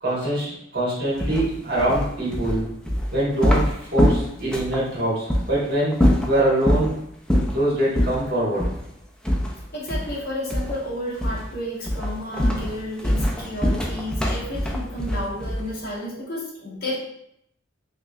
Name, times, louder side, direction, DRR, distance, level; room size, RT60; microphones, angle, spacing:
voice 1, 0.0-2.7 3.1-5.9 6.2-7.0 7.5-8.6, right 1 dB, 55° right, -7 dB, 1.4 m, -23 dB
sound 1, 1.2-4.8 5.3-5.5 5.9-6.9 7.3-7.6 7.9-8.2 8.6-8.8 9.2-10.2 10.5-10.9 11.2-11.5 11.8-15.8, equal, 5° left, 0.4 m, -23 dB
voice 2, 9.7-17.0, left 1 dB, 50° left, -6 dB, 1.2 m, -31 dB
3.4 x 3.0 x 2.4 m, 0.76 s
head